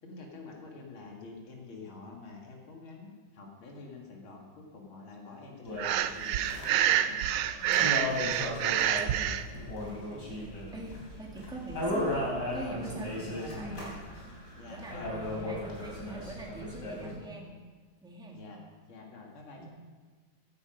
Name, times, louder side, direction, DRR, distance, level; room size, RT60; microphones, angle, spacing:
voice 1, 0.0-6.5 6.9-7.4 10.1-10.5 14.6-15.1 18.3-18.6 18.9-19.7, left 3 dB, 80° left, -1 dB, 2.8 m, -47 dB
sound 1, 5.6-17.1, left 1 dB, 55° left, 4.0 m, -36 dB
Breathing, 5.8-9.4, right 11 dB, 85° right, 1.4 m, -27 dB
voice 2, 7.6-8.3 9.8-10.1 10.7-14.1 14.7-17.6 18.0-18.5 19.6-19.7, right 2 dB, ahead, -1 dB, 1.8 m, -43 dB
15.5 x 9.8 x 5.2 m, 1.4 s
omnidirectional pair, 2.2 m